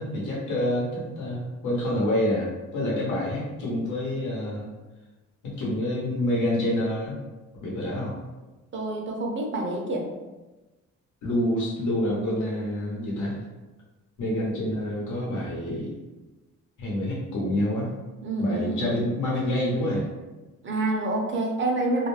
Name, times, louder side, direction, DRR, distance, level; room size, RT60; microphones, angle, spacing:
voice 1, 0.0-4.7 5.4-7.2 7.6-8.2 11.2-13.4 14.2-15.9 16.8-17.9 18.4-20.1, left 1 dB, 75° left, -5 dB, 1.0 m, -27 dB
voice 2, 8.7-10.1 18.2-18.9 20.6-22.1, right 2 dB, 40° right, 0 dB, 0.6 m, -27 dB
2.4 x 2.1 x 3.2 m, 1.1 s
cardioid pair, 90°, 30 cm